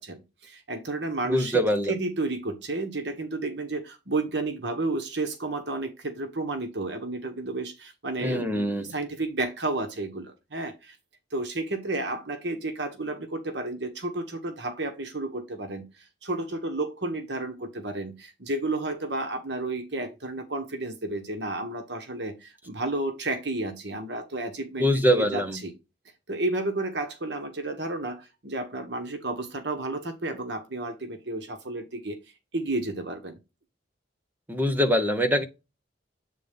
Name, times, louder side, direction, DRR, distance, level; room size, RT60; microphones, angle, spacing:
voice 1, 0.0-1.6 1.9-11.0 11.3-15.8 16.2-25.7 26.3-32.2 32.5-33.4, right 2 dB, 70° right, 1.4 m, -32 dB
voice 2, 1.2-1.9 8.2-8.9 24.8-25.6 34.5-35.4, equal, 10° right, 1.1 m, -23 dB
8.4 x 3.8 x 3.6 m
head